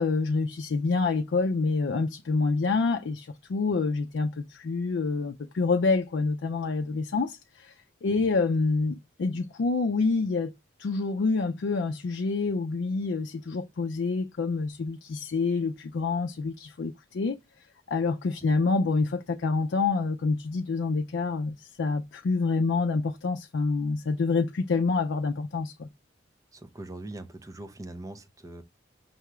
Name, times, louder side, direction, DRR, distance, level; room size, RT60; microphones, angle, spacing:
voice 1, 0.0-7.7 8.0-10.5 10.8-17.4 17.9-25.9, left 4 dB, 75° left, 0.4 m, -27 dB
voice 2, 26.5-28.6, right 2 dB, 15° right, 0.5 m, -41 dB
5.6 x 2.3 x 3.0 m
head